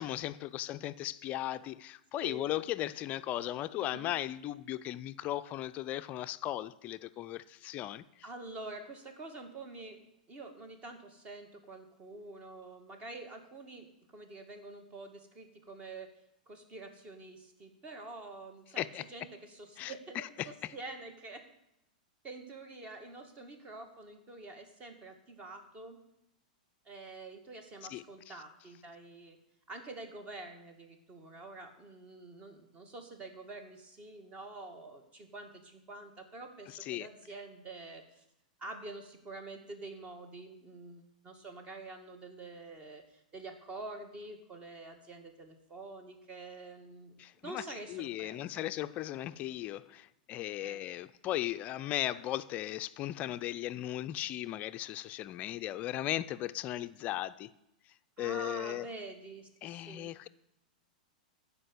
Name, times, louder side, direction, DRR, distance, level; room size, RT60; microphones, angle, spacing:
voice 1, 0.0-8.2 18.8-19.0 19.8-20.5 27.9-28.0 36.8-37.1 47.2-47.6 47.9-57.5 58.2-58.9 59.6-60.3, left 14 dB, 35° left, 0.4 m, -37 dB
voice 2, 2.2-2.5 3.8-4.1 8.2-10.0 10.3-16.1 16.5-21.4 22.2-26.0 26.9-29.4 29.7-38.2 38.6-47.2 47.4-48.7 50.6-50.8 58.2-60.1, right 2 dB, 30° right, 2.0 m, -47 dB
12.5 x 5.1 x 8.3 m
hypercardioid pair, 115°, 4 cm